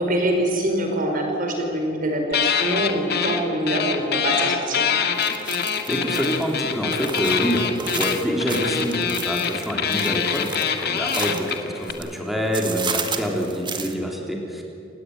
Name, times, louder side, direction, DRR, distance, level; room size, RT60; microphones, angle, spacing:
voice 1, 0.0-4.9, right 1 dB, 45° right, 3 dB, 5.1 m, -24 dB
sound 1, 2.3-3.4 3.7-11.9, left 7 dB, 55° left, 2.1 m, -24 dB
sound 2, 5.2-12.2 12.5-13.9, right 5 dB, 25° right, 1.9 m, -33 dB
voice 2, 5.6-10.5 10.8-14.6, equal, ahead, 0 dB, 3.5 m, -26 dB
28.5 x 17.5 x 9.7 m, 2.9 s
head